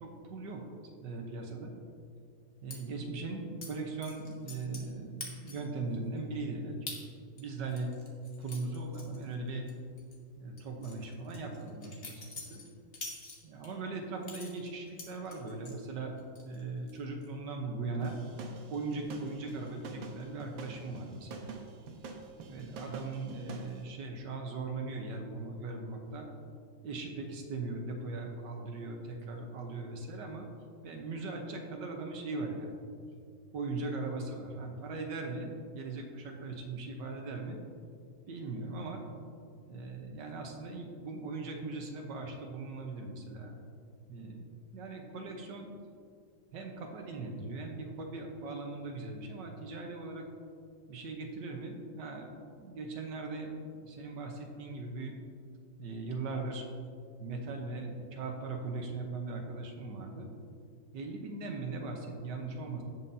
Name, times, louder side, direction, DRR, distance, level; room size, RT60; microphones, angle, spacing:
voice 1, 0.0-1.7 2.6-6.8 7.4-7.9 8.4-9.7 10.4-12.6 13.4-16.1 16.4-18.2 18.7-21.5 22.4-26.3 26.8-30.5 30.8-32.8 33.5-37.6 38.3-39.0 39.7-43.6 44.1-44.5 44.7-45.7 46.5-50.3 50.9-55.2 55.8-56.6 57.2-60.3 60.9-62.8, right 3 dB, 65° right, 2 dB, 1.6 m, -39 dB
sound 1, 2.7-2.8 3.6-3.7 4.0-4.9 5.2-5.7 6.2-6.3 6.9-7.0 7.4-9.7 10.0-10.2 10.6-13.7 14.2-15.8 16.2-16.6 16.9-17.3, left 3 dB, 35° left, 1.4 m, -45 dB
sound 2, 18.0-23.7, right 4 dB, 85° right, 1.6 m, -46 dB
17.0 x 5.7 x 2.8 m, 2.3 s
omnidirectional pair, 2.1 m